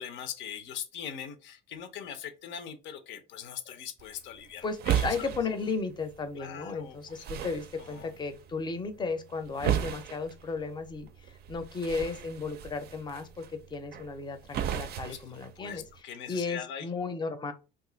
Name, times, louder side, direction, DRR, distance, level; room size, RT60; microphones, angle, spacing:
voice 1, 0.0-5.3 6.4-7.3 7.8-8.1 15.0-15.2 15.6-16.9, left 9 dB, 70° left, 0.7 m, -41 dB
sound 1, 4.0-16.0, right 10 dB, 55° right, 0.4 m, -36 dB
voice 2, 4.6-11.1 11.5-15.8 16.3-17.5, left 4 dB, 25° left, 0.6 m, -34 dB
2.7 x 2.4 x 3.8 m
cardioid pair, 105°, 20 cm